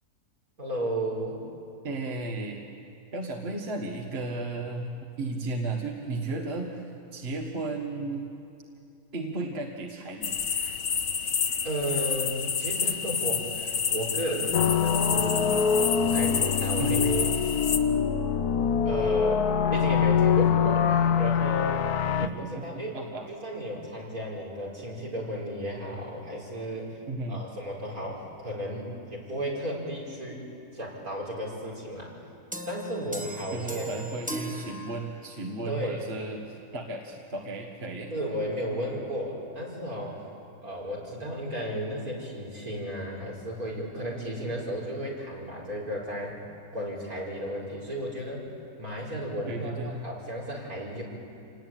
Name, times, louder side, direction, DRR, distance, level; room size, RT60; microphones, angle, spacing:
voice 1, 0.6-1.4 6.3-6.4 11.6-17.3 18.9-21.9 22.1-22.3 22.6-23.0 23.3-27.0 27.3-30.5 30.7-32.1 32.7-34.0 35.7-36.0 38.1-40.2 40.6-46.4 46.7-48.5 48.8-51.0, equal, 70° right, -3 dB, 5.5 m, -34 dB
voice 2, 1.8-2.6 3.1-4.9 5.2-6.8 7.1-8.3 9.1-10.4 16.8-17.0 22.2-22.7 22.9-23.3 27.1-27.5 33.5-38.1 49.5-50.0, right 3 dB, 40° right, 1 dB, 1.9 m, -34 dB
sound 1, 10.2-17.8, left 6 dB, 55° left, 1.3 m, -29 dB
sound 2, 14.5-22.3, left 7 dB, 80° left, 1.3 m, -24 dB
sound 3, 32.5-35.5, right 1 dB, 5° right, 1.2 m, -38 dB
28.0 x 19.0 x 9.2 m, 2.5 s
omnidirectional pair, 1.6 m